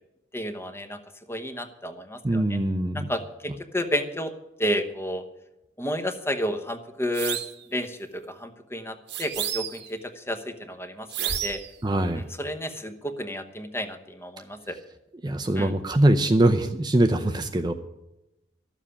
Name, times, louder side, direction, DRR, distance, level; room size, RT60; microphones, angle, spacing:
voice 1, 0.3-1.0 1.3-2.6 2.9-4.3 4.6-5.3 5.8-7.4 7.7-11.6 12.2-14.8 15.6-15.7, equal, 15° left, 8 dB, 1.0 m, -31 dB
voice 2, 2.2-3.1 11.8-12.2 15.2-17.7, right 1 dB, 20° right, 6 dB, 0.6 m, -22 dB
sound 1, 7.1-7.6 9.1-9.9 11.1-11.7, right 9 dB, 60° right, 1.1 m, -31 dB
13.0 x 7.4 x 9.9 m, 0.92 s
head